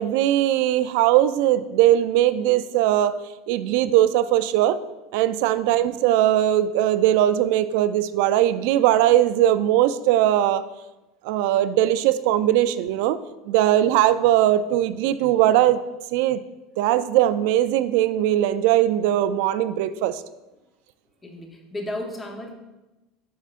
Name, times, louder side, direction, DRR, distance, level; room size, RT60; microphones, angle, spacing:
voice 1, 0.0-3.1 3.5-4.8 5.1-10.7 11.2-13.2 13.5-15.8 16.1-16.4 16.8-20.2, right 12 dB, 70° right, 13 dB, 0.3 m, -20 dB
voice 2, 21.2-22.5, left 1 dB, 15° left, 3 dB, 0.8 m, -33 dB
8.0 x 5.5 x 2.5 m, 1.0 s
supercardioid pair, 150°, 0 cm